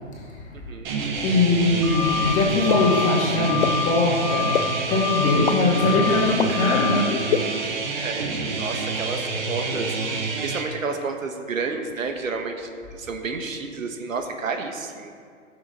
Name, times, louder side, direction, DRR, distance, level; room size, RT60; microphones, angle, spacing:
sound 1, 0.8-10.6, right 3 dB, 35° right, 1.5 m, -28 dB
voice 1, 1.2-7.3, left 2 dB, 20° left, -3 dB, 2.1 m, -21 dB
sound 2, 1.8-2.3 2.6-3.1 3.4-3.8 4.1-4.6 4.9-5.4 5.7-6.2 6.4-6.9, left 9 dB, ahead, 0.8 m, -27 dB
sound 3, 2.7-2.8 3.6-3.7 4.5-4.6 5.5-5.6 6.4-6.5 7.3-7.4, left 9 dB, 40° left, 0.6 m, -21 dB
voice 2, 7.9-15.1, right 4 dB, 75° right, 4 dB, 1.5 m, -31 dB
16.0 x 6.9 x 3.9 m, 2.1 s
hypercardioid pair, 140°, 40 cm